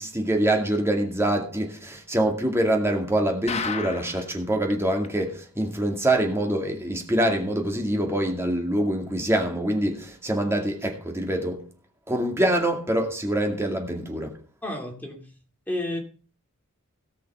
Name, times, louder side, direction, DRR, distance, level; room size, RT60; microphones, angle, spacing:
voice 1, 0.0-11.6 12.1-14.3, right 1 dB, 10° right, 2.3 m, -25 dB
sound 1, 3.5-4.3 4.7-4.8 5.0-5.1 5.6-5.7, left 5 dB, 30° left, 0.8 m, -31 dB
voice 2, 14.6-15.3 15.7-16.0, left 1 dB, 10° left, 2.8 m, -31 dB
18.0 x 6.2 x 5.6 m
head